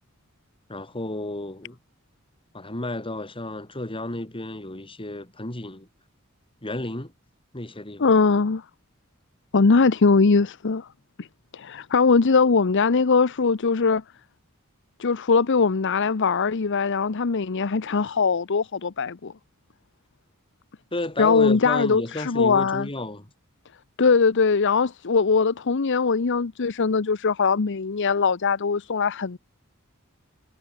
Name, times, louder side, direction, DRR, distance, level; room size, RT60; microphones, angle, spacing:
voice 1, 0.7-1.8 2.5-5.9 6.6-7.1 7.5-8.1 20.9-23.3, left 1 dB, 25° left, 2.6 m, -32 dB
voice 2, 8.0-8.6 9.5-10.9 11.2-11.3 11.5-14.0 15.0-19.3 21.2-22.9 24.0-29.4, left 4 dB, 60° left, 0.7 m, -21 dB
head